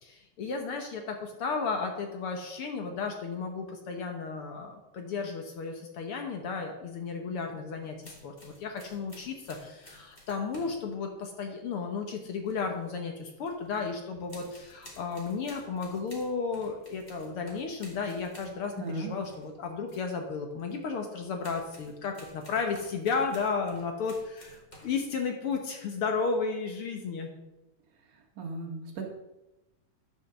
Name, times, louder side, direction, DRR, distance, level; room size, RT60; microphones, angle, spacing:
voice 1, 0.0-27.3, left 5 dB, 60° left, 3 dB, 1.6 m, -33 dB
supersuper Typewriter, 7.8-10.9 12.3-13.0 13.3-13.9 14.3-19.5 19.9-20.0 20.6-20.8 21.4-25.0, left 1 dB, 15° left, 1.9 m, -53 dB
voice 2, 18.8-19.1 28.4-29.0, right 3 dB, 85° right, 0 dB, 3.2 m, -36 dB
11.0 x 5.1 x 6.8 m, 0.99 s
omnidirectional pair, 3.4 m